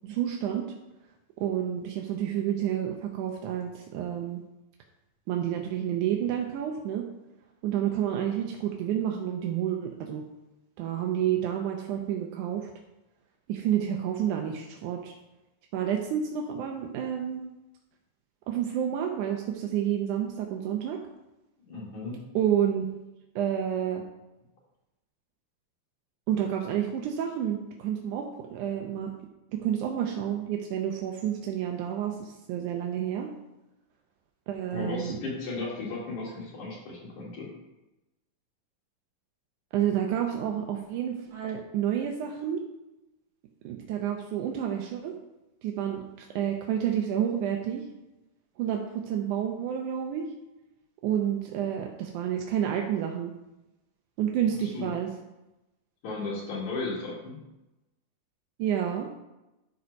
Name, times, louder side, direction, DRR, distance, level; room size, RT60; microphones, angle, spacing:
voice 1, 0.0-0.7 1.4-4.4 5.3-7.1 7.6-10.3 10.8-12.7 13.5-15.1 15.7-17.4 18.5-21.0 22.4-22.9 23.4-24.0 26.3-29.1 29.5-33.3 34.5-35.2 39.7-42.6 43.6-45.2 45.6-47.9 48.6-50.3 51.0-53.3 54.2-55.1 58.6-59.1, right 9 dB, 80° right, 2 dB, 2.3 m, -29 dB
voice 2, 21.7-22.2 34.7-37.5 54.6-54.9 56.0-57.4, left 3 dB, 70° left, -4 dB, 3.9 m, -35 dB
12.0 x 4.5 x 5.3 m, 0.97 s
omnidirectional pair, 3.5 m